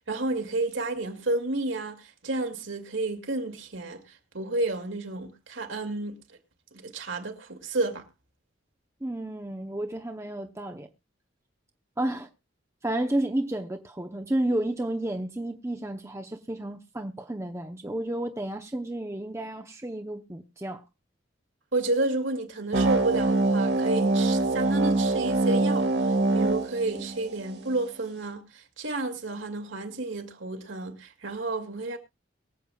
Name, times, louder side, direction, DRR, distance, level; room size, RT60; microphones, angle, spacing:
voice 1, 0.1-6.2 6.7-8.0 21.7-32.0, right 2 dB, 75° right, 2.3 m, -31 dB
voice 2, 9.0-10.9 12.0-12.3 12.8-20.8, right 1 dB, 15° right, 0.7 m, -31 dB
sound 1, 22.7-27.7, right 2 dB, 55° right, 1.6 m, -24 dB
23.0 x 7.9 x 2.3 m
head